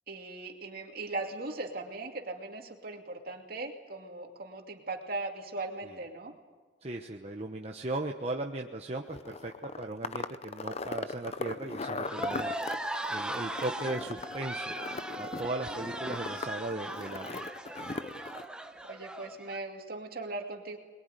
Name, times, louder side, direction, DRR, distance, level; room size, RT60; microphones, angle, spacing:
voice 1, 0.1-6.3 18.9-20.8, right 2 dB, 55° right, 3 dB, 2.6 m, -39 dB
voice 2, 6.8-12.5 13.1-14.8 15.2-17.4, right 2 dB, 35° right, 2 dB, 1.1 m, -37 dB
sound 1, 9.1-18.5, left 3 dB, 35° left, 0.7 m, -39 dB
sound 2, 12.0-19.6, right 1 dB, 5° right, 1.1 m, -38 dB
22.0 x 22.0 x 9.2 m, 1.4 s
head